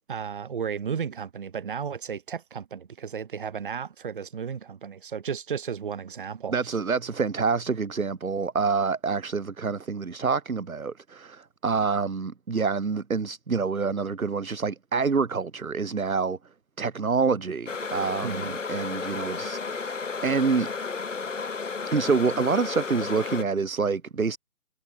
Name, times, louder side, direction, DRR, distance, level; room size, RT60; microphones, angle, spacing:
voice 1, 0.1-6.8 18.2-18.6, right 7 dB, 35° right, 2.1 m, -34 dB
voice 2, 6.5-16.4 16.8-20.7 21.9-24.4, right 5 dB, 65° right, 1.6 m, -27 dB
sound 1, 17.7-23.4, left 4 dB, 55° left, 3.4 m, -33 dB
figure-of-eight pair, 155°, 44 cm